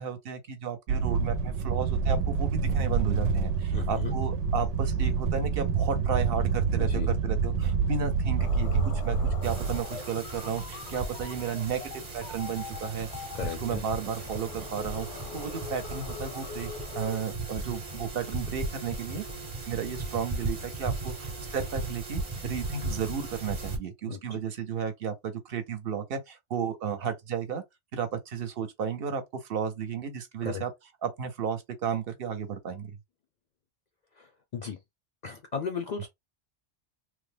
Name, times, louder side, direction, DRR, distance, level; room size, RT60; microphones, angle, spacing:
voice 1, 0.0-9.2 9.4-11.8 12.1-16.7 16.9-19.2 19.7-27.6 27.9-30.7 31.0-32.9, right 6 dB, 60° right, 0.8 m, -33 dB
sound 1, 0.9-9.8, right 5 dB, 90° right, 0.9 m, -27 dB
voice 2, 3.7-4.1 6.8-7.2 13.3-13.8 24.1-24.4 30.4-30.6 34.2-34.3 34.5-34.8 35.2-36.1, left 6 dB, 55° left, 0.5 m, -35 dB
sound 2, 8.4-17.2, left 6 dB, 90° left, 0.9 m, -43 dB
sound 3, 9.4-23.8, right 3 dB, 35° right, 0.9 m, -37 dB
3.1 x 2.0 x 3.3 m
omnidirectional pair, 1.1 m